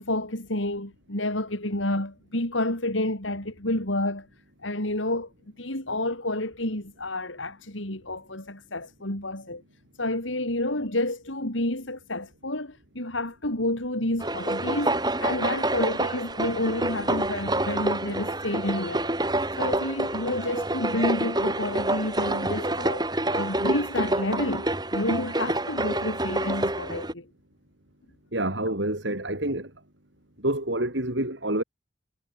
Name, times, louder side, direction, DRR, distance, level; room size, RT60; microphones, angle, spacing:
voice 1, 0.0-4.3 4.6-5.3 5.6-9.6 10.0-19.1 19.6-27.3, left 1 dB, 85° left, 5.9 m, -29 dB
sound 1, 14.2-27.1, right 1 dB, 20° right, 7.7 m, -27 dB
voice 2, 28.3-29.7 30.4-31.6, right 1 dB, 70° right, 5.6 m, -27 dB
head